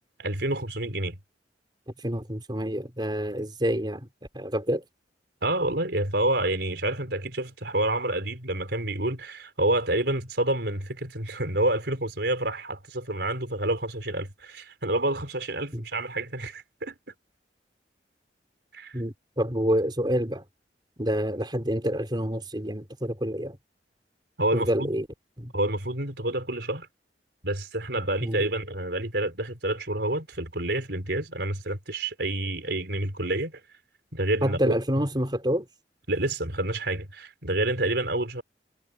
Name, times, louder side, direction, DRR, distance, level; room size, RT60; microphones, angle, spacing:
voice 1, 0.2-1.2 5.4-16.9 18.7-18.9 24.4-24.9 25.5-26.9 27.4-33.6 34.1-34.7 36.1-38.4, right 1 dB, 65° right, 4.5 m, -28 dB
voice 2, 2.0-4.1 4.3-4.8 15.7-15.8 18.9-20.4 21.0-23.6 24.5-25.1 25.4-25.5 28.2-28.4 34.4-35.7, equal, 25° right, 4.7 m, -27 dB
head